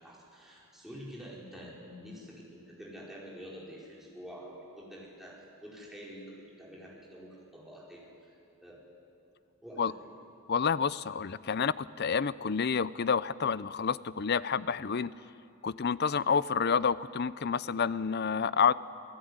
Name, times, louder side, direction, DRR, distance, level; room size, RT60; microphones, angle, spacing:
voice 1, 0.0-8.3 8.6-8.8 9.6-10.1, equal, ahead, -5 dB, 5.0 m, -47 dB
voice 2, 10.5-15.1 15.6-18.7, left 6 dB, 50° left, 17 dB, 0.5 m, -29 dB
27.0 x 17.5 x 9.7 m, 2.7 s
head